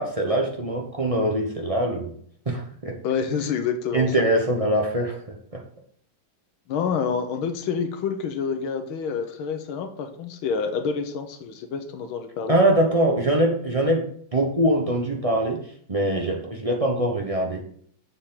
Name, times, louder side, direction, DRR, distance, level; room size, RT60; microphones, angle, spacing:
voice 1, 0.0-2.1 2.5-3.0 3.9-5.2 5.5-5.6 12.5-15.6 15.9-17.6, right 1 dB, 45° right, 0 dB, 0.4 m, -23 dB
voice 2, 3.0-4.3 6.7-12.6, left 6 dB, 80° left, 7 dB, 1.7 m, -28 dB
7.3 x 7.1 x 3.8 m, 0.62 s
omnidirectional pair, 2.2 m